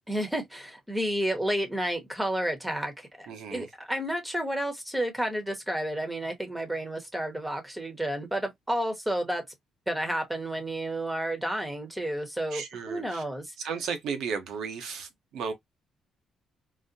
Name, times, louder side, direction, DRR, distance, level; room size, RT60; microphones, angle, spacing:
voice 1, 0.1-9.4 9.9-13.5, right 1 dB, 10° right, 1.1 m, -31 dB
voice 2, 3.3-3.7 12.5-13.2 13.6-15.5, right 6 dB, 75° right, 0.9 m, -34 dB
4.0 x 2.1 x 2.6 m
cardioid pair, 90°, 0 cm